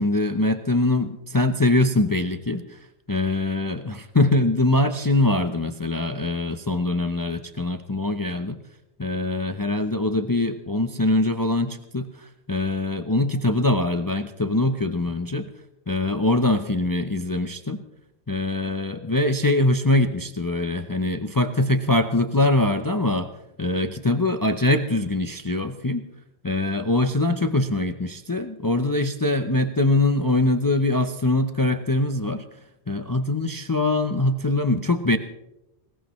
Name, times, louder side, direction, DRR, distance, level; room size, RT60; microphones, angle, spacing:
voice 1, 0.0-2.8 3.1-8.6 9.0-15.5 15.9-17.8 18.3-23.3 23.6-26.0 26.4-32.4 32.9-35.2, left 2 dB, 25° left, 8 dB, 0.6 m, -23 dB
20.5 x 18.5 x 3.1 m, 0.90 s
omnidirectional pair, 1.1 m